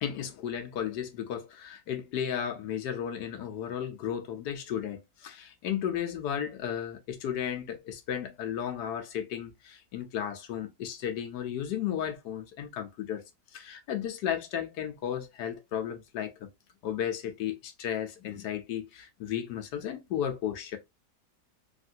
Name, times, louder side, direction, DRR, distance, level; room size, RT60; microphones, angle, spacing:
voice 1, 0.0-13.2 13.5-16.5 16.8-20.8, left 9 dB, 80° left, 1.2 m, -34 dB
3.5 x 2.5 x 2.6 m
omnidirectional pair, 1.8 m